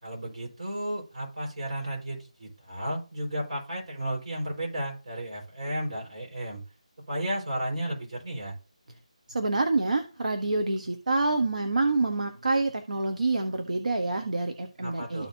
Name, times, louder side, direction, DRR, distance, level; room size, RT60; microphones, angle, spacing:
voice 1, 0.0-6.6 7.1-8.5 14.8-15.3, right 1 dB, 55° right, -2 dB, 4.8 m, -33 dB
voice 2, 9.3-15.3, right 3 dB, 75° right, 6 dB, 1.2 m, -27 dB
13.5 x 4.6 x 2.7 m, 0.33 s
figure-of-eight pair, 175°, 4 cm